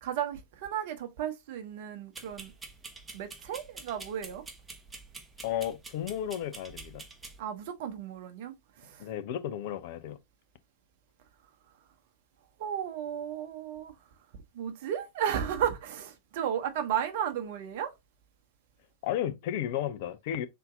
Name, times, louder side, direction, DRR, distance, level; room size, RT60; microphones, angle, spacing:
voice 1, 0.0-2.5 3.1-4.4 7.4-9.0 12.6-13.9 14.5-17.9, right 9 dB, 50° right, 0.9 m, -34 dB
sound 1, 2.2-7.4, right 3 dB, 15° right, 0.8 m, -47 dB
voice 2, 5.4-7.0 9.0-10.2 19.0-20.5, left 10 dB, 50° left, 0.6 m, -33 dB
3.9 x 2.8 x 3.7 m
figure-of-eight pair, 90°, 0 cm